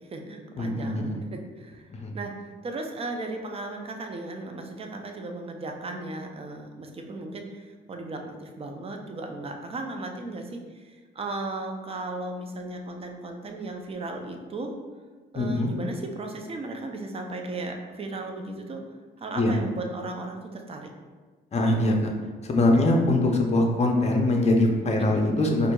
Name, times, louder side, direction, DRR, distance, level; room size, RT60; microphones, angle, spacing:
voice 1, 0.0-14.7 15.3-18.8 19.2-20.9 25.0-25.2, right 2 dB, 30° right, 3 dB, 0.5 m, -36 dB
voice 2, 0.6-1.2 1.9-2.1 15.3-15.7 19.4-19.6 21.5-22.1 22.4-25.7, left 1 dB, 35° left, 1 dB, 0.6 m, -22 dB
4.3 x 2.6 x 2.3 m, 1.4 s
cardioid pair, 90°, 20 cm